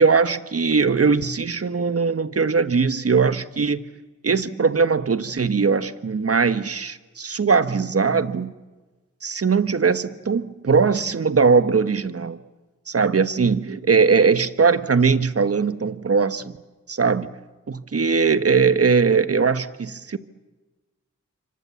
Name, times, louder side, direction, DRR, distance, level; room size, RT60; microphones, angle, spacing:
voice 1, 0.0-3.8 4.2-8.5 9.2-12.4 12.9-16.5 16.9-17.3 17.7-20.2, right 5 dB, 45° right, 11 dB, 1.5 m, -20 dB
27.5 x 25.0 x 7.3 m, 1.2 s
supercardioid pair, 40°, 32 cm